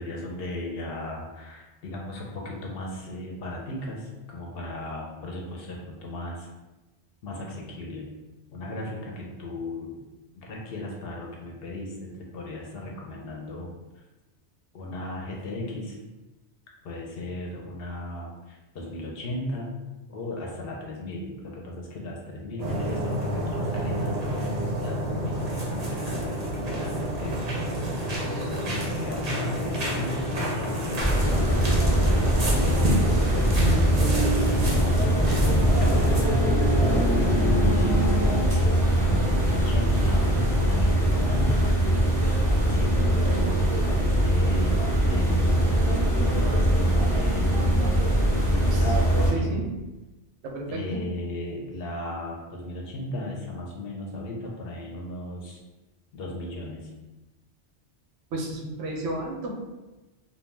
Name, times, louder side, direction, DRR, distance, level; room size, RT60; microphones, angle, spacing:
voice 1, 0.0-6.5 7.2-8.1 8.5-10.0 10.4-12.1 12.3-13.7 14.7-16.0 16.8-19.7 20.1-27.4 28.1-32.8 33.3-33.6 35.3-35.5 35.8-38.3 38.8-41.6 42.6-44.8 45.1-47.8 48.5-49.6 50.7-55.6 56.1-56.9, left 1 dB, 65° left, -1 dB, 0.7 m, -36 dB
sound 1, 22.6-36.2, equal, 50° right, 0.5 m, -29 dB
sound 2, 31.0-49.3, right 1 dB, 5° left, 0.8 m, -22 dB
sound 3, 34.4-38.9, equal, 40° left, 0.4 m, -29 dB
voice 2, 49.3-49.6 50.4-51.0 58.3-59.5, right 2 dB, 85° right, 0 dB, 0.9 m, -31 dB
2.3 x 2.2 x 3.2 m, 1.1 s
omnidirectional pair, 1.2 m